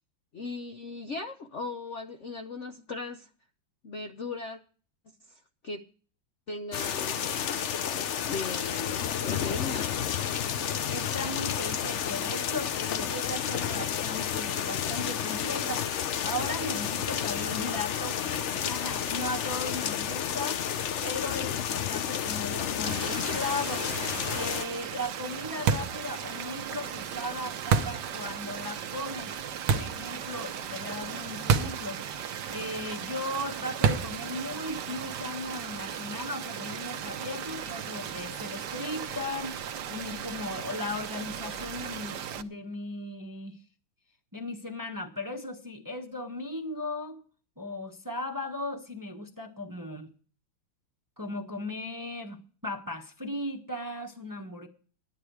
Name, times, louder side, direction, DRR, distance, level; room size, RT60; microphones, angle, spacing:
voice 1, 0.3-3.3 3.8-4.6 5.3-5.8 6.5-7.3 7.9-10.2, left 3 dB, 55° left, 5 dB, 0.9 m, -38 dB
sound 1, 6.7-24.7, left 9 dB, 90° left, 0.6 m, -31 dB
voice 2, 10.9-20.6 21.0-23.8 24.3-29.3 29.7-32.0 32.5-39.6 39.9-43.6 44.3-47.2 47.6-50.1 51.2-54.7, left 2 dB, 15° right, 4 dB, 1.0 m, -37 dB
sound 2, 22.8-42.4, right 8 dB, 65° right, 1.4 m, -37 dB
sound 3, 25.7-26.0 27.7-28.1 29.7-30.0 31.5-31.8 32.1-32.2 33.8-34.2, right 6 dB, 80° right, 1.7 m, -25 dB
13.5 x 11.0 x 4.7 m, 0.41 s
omnidirectional pair, 2.1 m